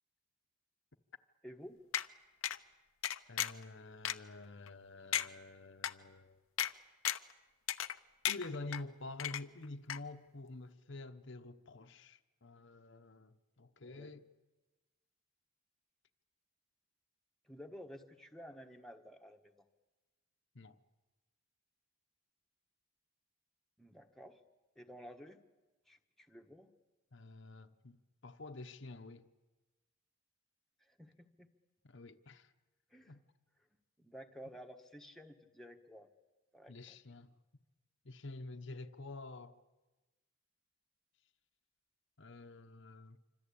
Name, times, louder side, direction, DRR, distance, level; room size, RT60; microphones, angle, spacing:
voice 1, 1.4-1.8 13.8-14.1 17.4-19.6 23.8-24.4 24.7-25.4 25.9-26.7 30.8-31.5 32.9-33.2 34.0-36.1 36.5-37.0, equal, ahead, 1.3 m, -53 dB
sound 1, 1.9-2.1 2.4-2.6 3.0-3.6 4.0-4.2 4.7-4.8 5.1-5.3 5.8-5.9 6.6-6.7 7.0-7.3 7.7-8.0 8.2-8.8 9.2-9.6 9.9-10.0, left 11 dB, 85° left, 0.9 m, -35 dB
voice 2, 3.3-6.4 8.3-14.3 20.5-20.8 27.1-29.3 31.8-32.5 33.1-33.2 36.7-37.3 38.0-39.6 42.2-43.2, left 2 dB, 60° left, 1.0 m, -48 dB
27.0 x 25.5 x 8.6 m
head